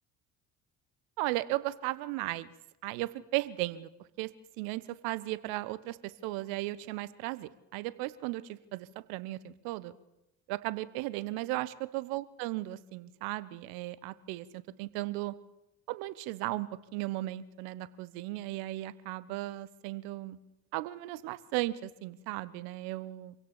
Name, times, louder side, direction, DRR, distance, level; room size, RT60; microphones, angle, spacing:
voice 1, 1.2-2.5 2.8-3.9 4.2-4.3 4.6-9.9 10.5-15.3 15.9-20.4 20.7-23.3, right 18 dB, 65° right, 17 dB, 1.2 m, -36 dB
26.0 x 16.5 x 7.3 m, 0.91 s
figure-of-eight pair, 55°, 39 cm